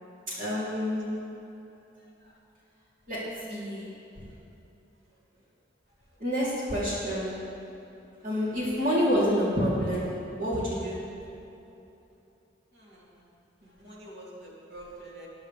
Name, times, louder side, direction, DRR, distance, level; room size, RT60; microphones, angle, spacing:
voice 1, 0.4-1.2 3.1-3.2 3.5-3.9 6.2-7.4 8.2-10.1 10.4-11.0, equal, 45° right, -9 dB, 3.3 m, -28 dB
voice 2, 12.7-13.3 13.6-15.3, right 1 dB, 65° right, -5 dB, 3.1 m, -47 dB
19.5 x 11.0 x 3.4 m, 2.9 s
head